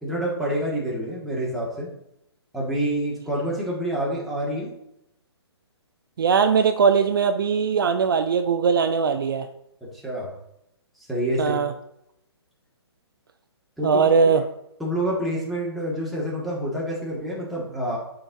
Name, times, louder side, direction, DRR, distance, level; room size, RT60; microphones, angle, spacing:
voice 1, 0.0-1.9 2.5-4.7 9.8-10.3 11.1-11.6 13.8-13.9 14.8-18.0, right 1 dB, ahead, -6 dB, 1.9 m, -27 dB
voice 2, 6.2-9.5 11.4-11.7 13.8-14.4, right 6 dB, 55° right, 8 dB, 0.5 m, -20 dB
9.8 x 4.5 x 3.7 m, 0.80 s
figure-of-eight pair, 130°, 14 cm